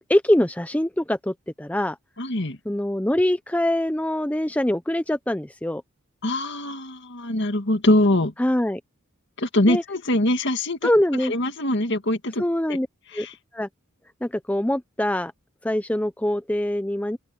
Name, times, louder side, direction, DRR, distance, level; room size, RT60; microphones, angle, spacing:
voice 1, 0.1-2.0 2.7-5.8 8.4-8.8 9.7-9.8 10.8-11.3 12.4-12.9 13.1-13.3 13.5-13.7 14.2-15.3 15.6-17.2, left 1 dB, 5° left, 0.6 m, -23 dB
voice 2, 2.2-2.6 6.2-8.3 9.4-10.9 11.2-12.4 12.7-12.8 13.1-13.3, left 1 dB, 55° left, 2.1 m, -23 dB
open air
head